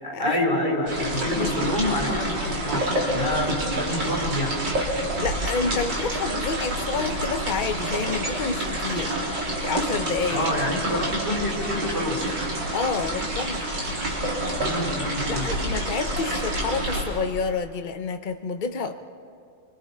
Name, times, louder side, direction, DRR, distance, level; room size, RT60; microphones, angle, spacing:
voice 1, 0.0-4.5 10.3-12.2 14.5-15.5, left 1 dB, 25° left, -2 dB, 4.5 m, -27 dB
sound 1, 0.9-17.0, right 1 dB, 70° right, 4.2 m, -28 dB
voice 2, 5.2-9.2 9.6-10.5 12.7-13.7 15.2-18.9, left 5 dB, 75° left, 7 dB, 0.4 m, -29 dB
27.5 x 24.5 x 4.3 m, 2.3 s
omnidirectional pair, 2.0 m